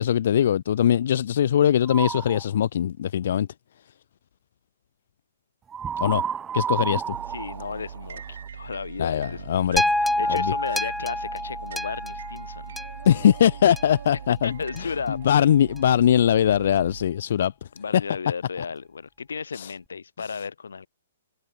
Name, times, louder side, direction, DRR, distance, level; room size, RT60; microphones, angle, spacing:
voice 1, 0.0-3.5 6.0-6.2 6.5-7.1 9.0-9.8 10.3-10.5 13.0-14.6 15.2-17.5 19.5-19.7, left 10 dB, 60° left, 1.5 m, -21 dB
sound 1, 1.8-2.4 5.7-8.5, right 7 dB, 15° right, 2.5 m, -30 dB
sound 2, 7.1-17.1, right 8 dB, 70° right, 6.1 m, -41 dB
voice 2, 7.3-12.7 14.4-15.2 17.8-20.9, left 5 dB, 90° left, 5.7 m, -34 dB
sound 3, 9.8-14.1 14.8-14.9, left 1 dB, ahead, 1.3 m, -28 dB
hypercardioid pair, 150°, 0 cm